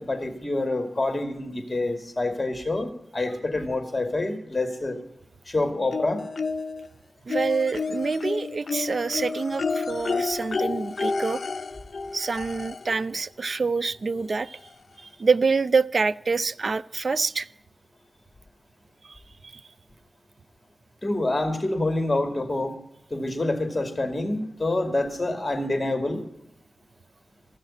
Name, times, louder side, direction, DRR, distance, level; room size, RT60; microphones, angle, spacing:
voice 1, 0.0-5.0 5.5-6.2 21.0-22.8 23.1-26.2, left 2 dB, 30° left, 7 dB, 2.5 m, -27 dB
sound 1, 5.9-6.9 7.3-13.0 14.2-14.3 14.7-14.8, left 4 dB, 60° left, 0.6 m, -30 dB
voice 2, 7.3-11.4 12.1-14.6 15.0-17.5 19.1-19.2, right 4 dB, 60° right, 17 dB, 0.4 m, -26 dB
14.5 x 6.5 x 8.7 m, 0.77 s
cardioid pair, 50°, 0 cm